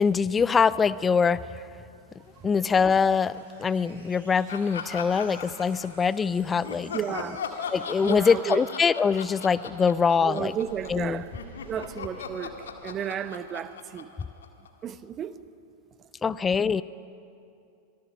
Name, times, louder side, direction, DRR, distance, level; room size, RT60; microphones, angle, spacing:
voice 1, 0.0-1.4 2.4-6.9 7.7-10.5 10.9-11.2 16.2-16.8, left 6 dB, 20° left, 0.5 m, -23 dB
sound 1, 1.9-14.1, right 2 dB, 75° right, 5.6 m, -52 dB
Laughter, 4.5-6.2 6.6-11.0 11.3-14.9, left 6 dB, 65° left, 1.8 m, -39 dB
voice 2, 6.9-7.4 8.0-8.6 10.2-11.3 11.6-14.1 14.8-15.4, right 9 dB, 30° right, 0.9 m, -33 dB
25.0 x 19.5 x 6.4 m
figure-of-eight pair, 90°, 0 cm